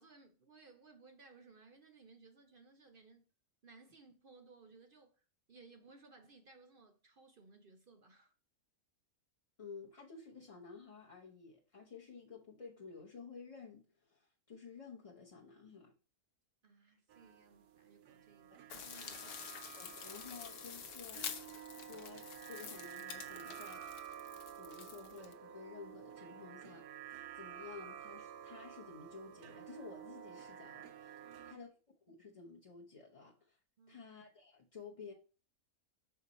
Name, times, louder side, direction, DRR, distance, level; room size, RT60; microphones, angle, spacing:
voice 1, 0.0-3.3 3.6-8.3 16.6-19.4 31.2-31.7 33.8-34.1, right 4 dB, 50° right, 0.7 m, -61 dB
voice 2, 9.6-15.9 19.8-21.2 21.7-23.9 24.5-31.7 32.1-33.6 33.9-35.1, left 5 dB, 30° left, 0.6 m, -53 dB
sound 1, 17.1-31.5, right 10 dB, 85° right, 1.1 m, -51 dB
sound 2, 18.7-25.3, left 7 dB, 80° left, 1.3 m, -48 dB
6.4 x 4.6 x 4.1 m
omnidirectional pair, 1.6 m